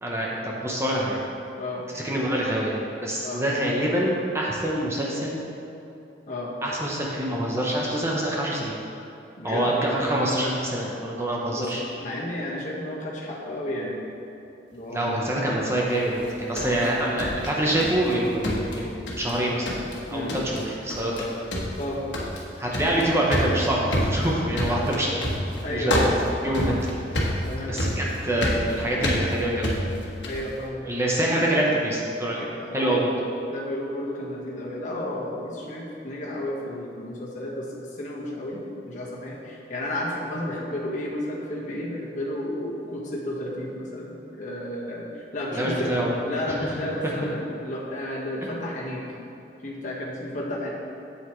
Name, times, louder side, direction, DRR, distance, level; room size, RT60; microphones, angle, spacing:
voice 1, 0.0-1.2 1.9-5.5 6.6-8.8 9.4-11.8 14.9-18.9 19.2-19.7 20.1-21.3 22.6-25.1 25.7-25.9 26.4-26.7 27.1-27.3 27.6-29.7 30.9-33.1 45.5-46.1 46.5-46.6, right 1 dB, 15° right, -4 dB, 0.9 m, -25 dB
voice 2, 9.4-9.7 11.5-11.7 12.0-14.0 14.7-15.3 16.6-16.8 20.1-20.3 21.8-22.0 24.7-24.8 25.6-26.1 27.4-27.8 30.2-30.9 32.6-33.1 33.5-45.9 46.3-49.2 49.6-50.7, left 1 dB, 45° left, -4 dB, 1.4 m, -32 dB
sound 1, 16.2-18.1 18.4-19.4 19.7-20.0 20.3-20.6 20.9-21.2 21.5-30.5, left 1 dB, 80° left, 1.3 m, -28 dB
8.1 x 8.0 x 3.2 m, 2.7 s
head